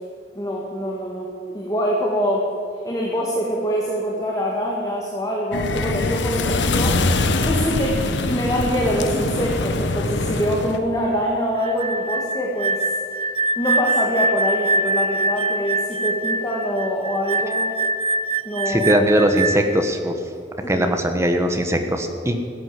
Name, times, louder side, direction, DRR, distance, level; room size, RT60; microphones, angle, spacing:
voice 1, 0.3-2.5 2.8-12.8 13.6-17.7 18.5-18.9 20.6-20.9, equal, 20° left, -3 dB, 1.8 m, -24 dB
sound 1, 5.5-10.8, left 2 dB, 85° left, 1.1 m, -23 dB
sound 2, 11.6-19.8, right 2 dB, 30° right, 0.4 m, -24 dB
voice 2, 18.7-20.1 20.7-22.4, equal, 15° right, 5 dB, 1.3 m, -20 dB
16.5 x 8.9 x 7.6 m, 2.4 s
head